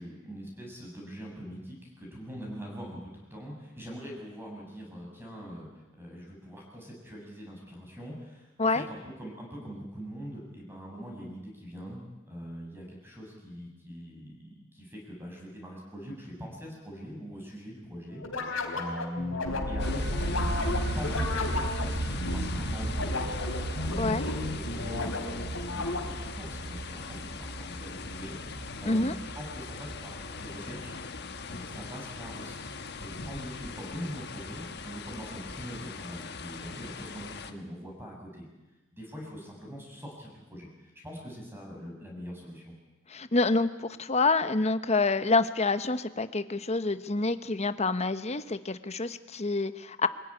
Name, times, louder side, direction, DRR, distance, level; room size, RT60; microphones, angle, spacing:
voice 1, 0.0-5.7 6.0-31.0 31.5-38.5 38.9-42.7, equal, 10° right, -1 dB, 6.9 m, -42 dB
sound 1, 18.2-26.3, left 2 dB, 90° left, 3.6 m, -34 dB
sound 2, 19.4-31.3, right 1 dB, 55° right, 2.1 m, -35 dB
sound 3, 19.8-37.5, left 4 dB, 55° left, 1.4 m, -41 dB
voice 2, 43.1-50.1, left 3 dB, 30° left, 12 dB, 0.9 m, -27 dB
24.0 x 16.0 x 10.0 m, 1.1 s
head